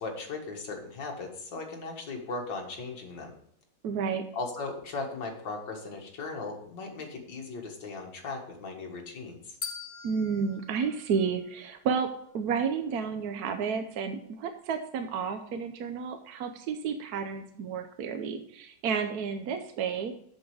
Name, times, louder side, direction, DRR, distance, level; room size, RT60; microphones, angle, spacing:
voice 1, 0.0-3.3 4.3-9.6, left 3 dB, 65° left, 1 dB, 2.3 m, -37 dB
voice 2, 3.8-4.2 10.0-12.1 12.3-20.1, right 6 dB, 65° right, 6 dB, 1.0 m, -31 dB
sound 1, 9.6-11.9, left 5 dB, 30° left, 1.2 m, -43 dB
7.8 x 7.0 x 4.8 m, 0.68 s
omnidirectional pair, 2.1 m